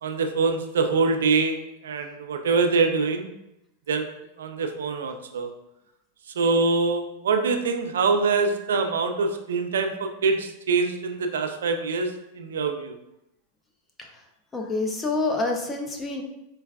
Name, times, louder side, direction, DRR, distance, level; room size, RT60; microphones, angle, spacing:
voice 1, 0.0-3.3 3.9-4.1 4.4-5.5 6.4-13.0, right 4 dB, 85° right, 6 dB, 0.3 m, -24 dB
voice 2, 14.5-16.2, left 2 dB, 15° left, 2 dB, 0.5 m, -27 dB
4.5 x 2.2 x 2.3 m, 0.87 s
hypercardioid pair, 120°, 0 cm